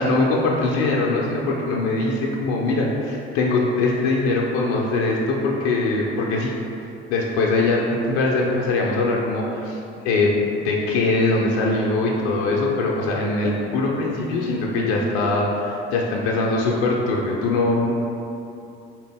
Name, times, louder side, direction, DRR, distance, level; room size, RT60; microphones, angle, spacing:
voice 1, 0.0-6.5 7.1-9.8 10.0-10.4 10.6-17.9, left 2 dB, 60° left, -2 dB, 0.5 m, -22 dB
3.9 x 2.9 x 3.3 m, 2.7 s
figure-of-eight pair, 55°, 33 cm